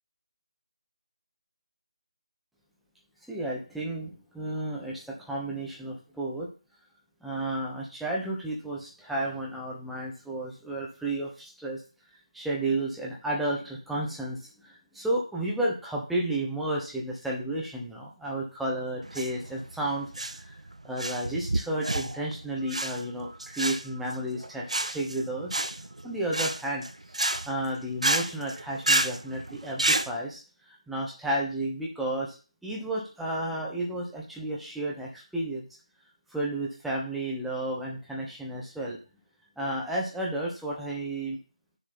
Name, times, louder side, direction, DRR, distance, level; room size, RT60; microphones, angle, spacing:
voice 1, 3.3-6.5 7.2-11.8 12.3-20.6 20.8-25.5 26.0-26.9 27.5-30.4 30.7-32.3 32.6-35.7 36.3-39.0 39.6-41.4, right 1 dB, ahead, -4 dB, 1.2 m, -32 dB
sound 1, 19.0-30.1, right 2 dB, 70° right, 0.7 m, -30 dB
7.7 x 6.8 x 4.2 m, 0.36 s
figure-of-eight pair, 155°, 4 cm